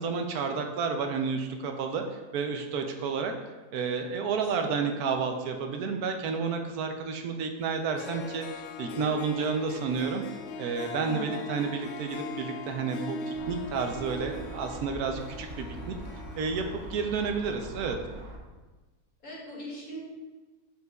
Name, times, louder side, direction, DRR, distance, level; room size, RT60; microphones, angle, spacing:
voice 1, 0.0-2.0 2.3-3.3 3.7-10.2 10.6-16.0 16.4-16.6 16.9-18.0, right 5 dB, 75° right, 5 dB, 1.1 m, -31 dB
voice 2, 4.0-4.7 11.0-11.4 19.2-20.0, left 1 dB, 60° left, -6 dB, 2.7 m, -41 dB
Harp, 7.7-7.8 8.0-17.5, left 3 dB, 85° left, 0.6 m, -40 dB
sound 1, 13.3-18.4, right 1 dB, 40° right, 0.7 m, -43 dB
8.0 x 6.4 x 2.3 m, 1.2 s
omnidirectional pair, 1.7 m